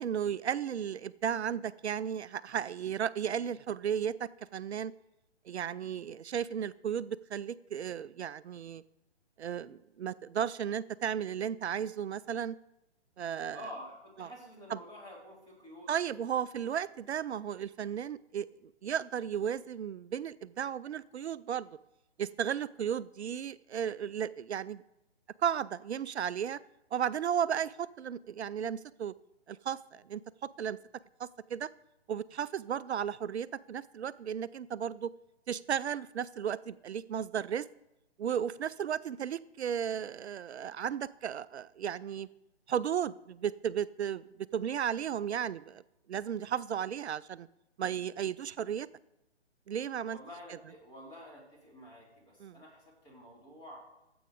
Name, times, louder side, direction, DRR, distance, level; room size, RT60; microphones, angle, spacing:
voice 1, 0.0-4.9 5.5-8.8 9.4-12.6 13.2-13.6 14.2-14.3 15.9-18.5 18.8-21.7 22.2-24.8 25.4-26.6 26.9-29.1 29.5-30.2 30.6-30.8 31.2-31.7 32.1-35.1 35.5-37.7 38.2-42.3 42.7-45.8 46.1-47.5 47.8-48.9 49.7-50.2 52.4-52.6, right 8 dB, 75° right, 17 dB, 0.5 m, -34 dB
voice 2, 13.5-15.9 50.1-53.8, equal, 10° left, -5 dB, 4.1 m, -49 dB
14.5 x 7.9 x 4.9 m, 0.94 s
figure-of-eight pair, 140°, 34 cm